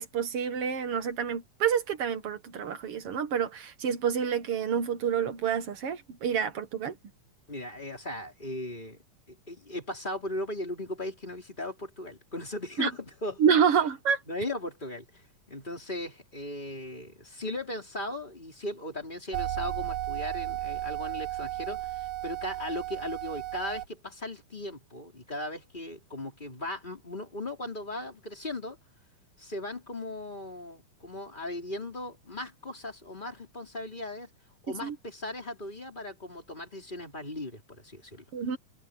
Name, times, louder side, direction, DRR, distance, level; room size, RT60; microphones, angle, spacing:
voice 1, 0.0-7.0 12.8-12.9 13.4-14.2 34.8-35.0 38.3-38.6, right 7 dB, 55° right, 1.8 m, -28 dB
voice 2, 7.5-9.0 9.5-13.4 14.3-15.1 15.5-28.8 29.4-34.3 34.6-38.2, left 1 dB, 15° left, 4.4 m, -37 dB
sound 1, 19.3-23.9, right 14 dB, 80° right, 2.9 m, -34 dB
omnidirectional pair, 3.9 m